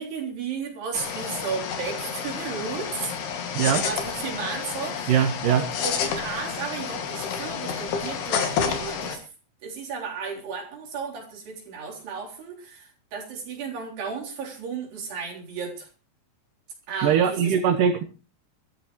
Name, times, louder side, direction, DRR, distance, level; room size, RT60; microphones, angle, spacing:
voice 1, 0.0-3.2 3.7-9.2 9.6-15.9 16.9-17.6, right 5 dB, 90° right, 0 dB, 5.7 m, -34 dB
sound 1, 0.9-9.2, left 7 dB, 80° left, 4.2 m, -30 dB
voice 2, 3.5-3.9 5.1-5.6 17.0-18.0, right 8 dB, 65° right, 8 dB, 2.3 m, -21 dB
23.5 x 13.5 x 3.1 m, 0.33 s
omnidirectional pair, 4.6 m